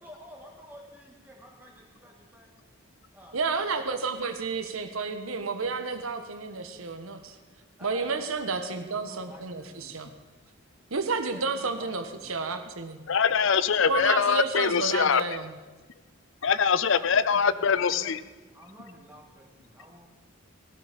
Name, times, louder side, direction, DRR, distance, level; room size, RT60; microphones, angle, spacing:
voice 1, 0.0-2.5 3.1-3.9 7.8-10.0 11.3-12.3 16.9-18.2 18.5-20.1, equal, 10° right, -1 dB, 2.8 m, -50 dB
voice 2, 3.3-7.4 7.8-10.1 10.9-13.0 13.9-15.5, right 4 dB, 80° right, 8 dB, 1.3 m, -31 dB
voice 3, 13.1-15.2 16.4-18.2, left 6 dB, 60° left, 15 dB, 0.5 m, -23 dB
18.0 x 12.0 x 5.2 m, 1.3 s
head